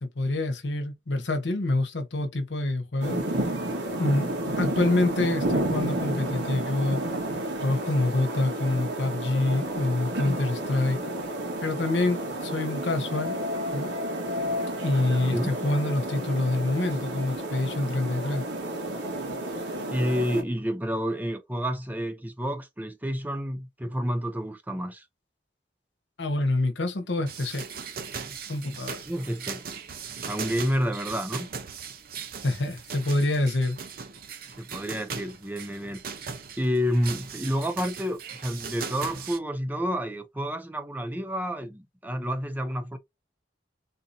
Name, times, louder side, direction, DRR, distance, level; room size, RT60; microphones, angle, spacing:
voice 1, 0.0-3.2 4.0-4.3 4.6-7.0 7.6-11.0 11.6-13.4 13.7-13.9 14.8-18.4 26.2-27.7 28.1-29.0 32.4-33.8, left 2 dB, 80° left, 0.9 m, -26 dB
sound 1, 3.0-20.4, right 1 dB, 75° right, 1.4 m, -31 dB
voice 2, 19.9-25.1 29.1-29.6 30.2-31.5 34.4-36.0 36.6-43.0, equal, 10° right, 0.5 m, -29 dB
sound 2, 27.3-39.4, right 6 dB, 55° right, 0.7 m, -39 dB
3.8 x 2.7 x 2.6 m
head